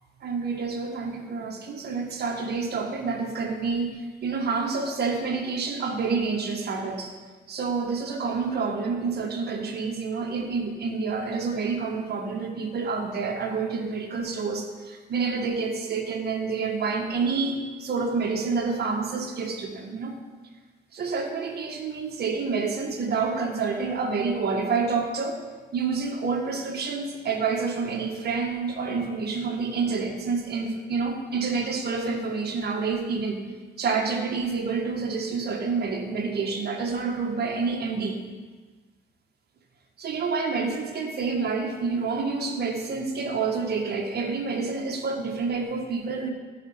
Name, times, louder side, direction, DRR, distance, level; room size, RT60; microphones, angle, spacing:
voice 1, 0.2-7.1 7.5-20.1 20.9-25.4 25.7-33.4 33.8-38.2 40.0-46.3, right 4 dB, 55° right, 3 dB, 1.6 m, -28 dB
13.0 x 5.4 x 5.7 m, 1.4 s
cardioid pair, 90°, 20 cm